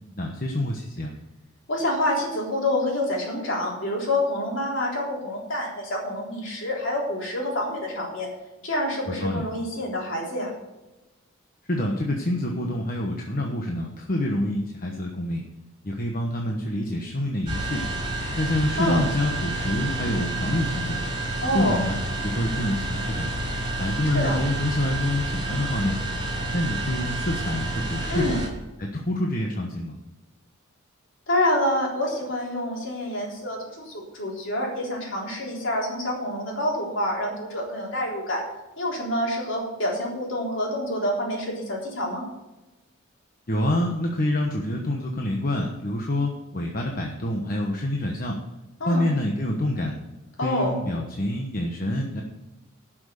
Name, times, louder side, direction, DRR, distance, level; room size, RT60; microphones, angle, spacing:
voice 1, 0.1-1.1 9.1-9.4 11.7-15.4 15.8-17.8 18.4-21.0 21.5-21.9 22.2-23.3 23.8-26.0 26.5-28.4 28.8-29.9 43.5-48.4 48.9-49.9 50.4-52.2, left 1 dB, 45° left, 1 dB, 1.2 m, -27 dB
voice 2, 1.7-8.3 8.6-10.5 18.8-19.0 21.4-21.8 24.1-24.4 28.1-28.4 31.3-38.4 38.8-42.2 48.8-49.0 50.4-50.8, left 1 dB, 65° left, -2 dB, 3.7 m, -27 dB
sound 1, 17.5-28.5, right 1 dB, 25° right, 4.4 m, -29 dB
11.5 x 6.2 x 6.7 m, 1.1 s
head